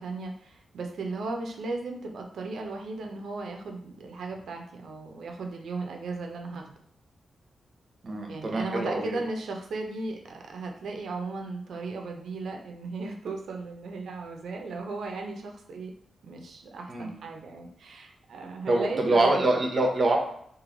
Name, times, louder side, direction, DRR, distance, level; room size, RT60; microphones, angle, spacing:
voice 1, 0.0-6.6 8.3-15.9 16.2-19.5, right 3 dB, 80° right, 2 dB, 0.7 m, -36 dB
voice 2, 8.0-9.2 16.9-17.1 18.7-20.2, right 2 dB, 40° right, 1 dB, 0.9 m, -25 dB
3.1 x 2.7 x 3.9 m, 0.66 s
wide cardioid pair, 125°, 0 cm